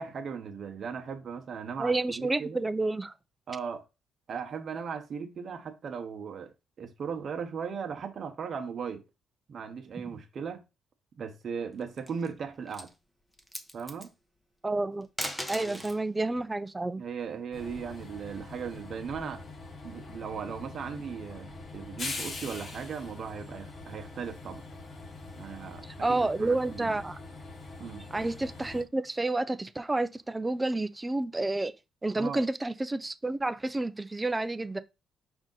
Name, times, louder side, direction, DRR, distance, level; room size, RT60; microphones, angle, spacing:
voice 1, 0.0-2.6 3.5-3.8 4.3-9.0 9.5-10.6 11.2-12.9 13.7-14.1 15.6-15.8 17.0-19.4 19.8-24.6 25.4-25.8 26.1-27.0 27.8-28.0 32.1-32.5, right 6 dB, 55° right, 0.9 m, -37 dB
voice 2, 1.8-3.1 9.9-10.2 14.6-15.1 15.5-17.0 25.8-27.2 28.1-31.7 32.0-34.8, right 2 dB, 15° right, 0.3 m, -30 dB
Small plastic impact drop slide, 11.8-12.3 12.7-12.9 13.3-14.1 15.0-16.0 17.5-18.7, equal, 5° left, 0.8 m, -39 dB
Train, 17.5-28.8, left 3 dB, 45° left, 1.0 m, -43 dB
4.9 x 2.6 x 3.8 m
cardioid pair, 90°, 0 cm